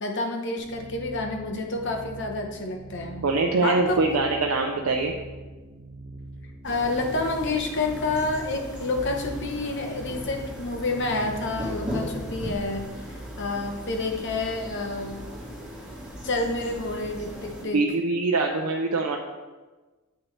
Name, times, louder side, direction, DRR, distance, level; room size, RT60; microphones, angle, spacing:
voice 1, 0.0-3.2 3.6-4.2 6.6-15.2 16.2-17.8, left 2 dB, 55° left, 3 dB, 0.9 m, -29 dB
sound 1, 0.6-12.7, right 2 dB, 30° right, 0.5 m, -43 dB
voice 2, 3.2-5.1 17.6-19.2, right 3 dB, 85° right, 1 dB, 0.6 m, -23 dB
sound 2, 6.6-17.6, equal, 5° right, 2.3 m, -38 dB
7.9 x 5.9 x 3.2 m, 1.2 s
head